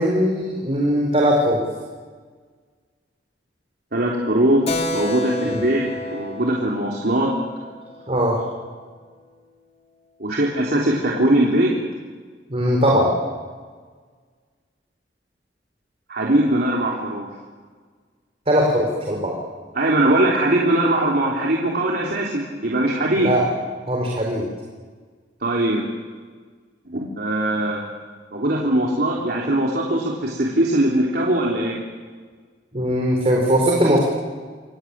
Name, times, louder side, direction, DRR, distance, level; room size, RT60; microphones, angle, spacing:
voice 1, 0.0-1.6 5.4-5.6 8.1-8.4 12.5-13.1 18.5-19.3 23.2-23.5 23.9-24.5 32.7-34.0, equal, 35° right, -1 dB, 4.6 m, -19 dB
voice 2, 3.9-5.8 6.1-7.3 10.2-11.7 16.1-17.3 19.8-23.3 25.4-25.9 26.9-27.8 28.3-31.8, right 1 dB, 60° right, -3 dB, 3.6 m, -21 dB
Keyboard (musical), 4.7-8.7, left 1 dB, 40° left, 2.3 m, -31 dB
27.5 x 22.5 x 8.9 m, 1.5 s
head